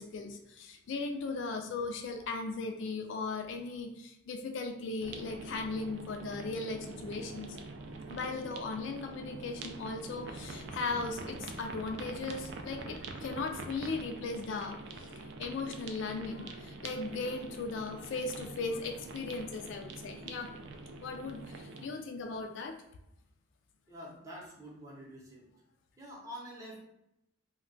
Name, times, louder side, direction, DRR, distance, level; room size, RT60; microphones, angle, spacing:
voice 1, 0.0-7.6 8.1-20.5 21.0-22.7, left 3 dB, 60° left, 4 dB, 0.3 m, -38 dB
sound 1, 5.0-21.9, right 3 dB, 60° right, 0.3 m, -45 dB
voice 2, 23.9-25.5 26.0-26.8, equal, 15° right, -4 dB, 0.7 m, -47 dB
2.2 x 2.1 x 3.8 m, 0.83 s
head